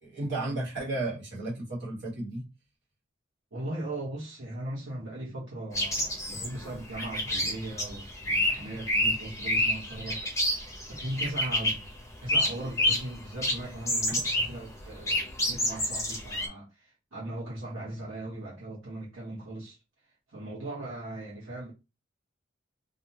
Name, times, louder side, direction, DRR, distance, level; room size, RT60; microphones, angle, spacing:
voice 1, 0.0-2.4, right 2 dB, 60° right, 1.4 m, -33 dB
voice 2, 3.5-10.3 10.9-11.8 12.2-19.8 20.3-21.7, right 1 dB, 85° right, 1.2 m, -38 dB
sound 1, 5.7-11.9 12.3-13.2 13.4-14.6 14.8-16.5, left 1 dB, 15° left, 0.6 m, -28 dB
2.6 x 2.2 x 2.7 m
head